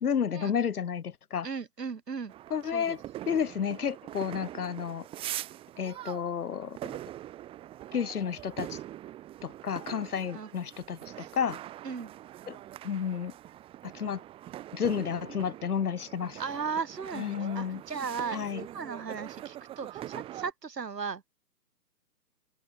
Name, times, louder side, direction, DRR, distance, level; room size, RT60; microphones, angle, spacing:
voice 1, 0.0-1.5 2.5-3.0 3.3-5.1 5.8-6.9 7.9-8.8 9.4-11.0 11.3-11.6 12.5-12.6 12.8-13.3 13.8-14.2 14.7-16.4 17.2-17.8 18.3-18.6, left 7 dB, 60° left, 1.7 m, -31 dB
voice 2, 1.4-2.3 2.6-3.0 10.3-10.5 11.2-11.3 11.8-12.1 16.4-21.3, right 5 dB, 75° right, 7.4 m, -36 dB
sound 1, 2.3-20.5, right 13 dB, 10° right, 3.9 m, -43 dB
hypercardioid pair, 165°, 50 cm